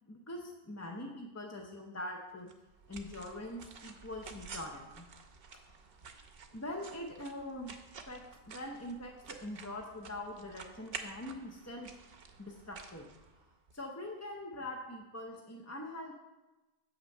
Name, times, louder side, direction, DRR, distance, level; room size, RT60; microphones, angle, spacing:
voice 1, 0.1-2.5 2.9-5.0 6.5-7.8 8.1-11.9 12.4-13.1 13.3-13.4 13.7-16.1, left 1 dB, 20° left, 1 dB, 0.5 m, -43 dB
sound 1, 2.5-13.8, right 5 dB, 55° right, 0.9 m, -51 dB
7.4 x 5.9 x 5.3 m, 1.1 s
omnidirectional pair, 1.3 m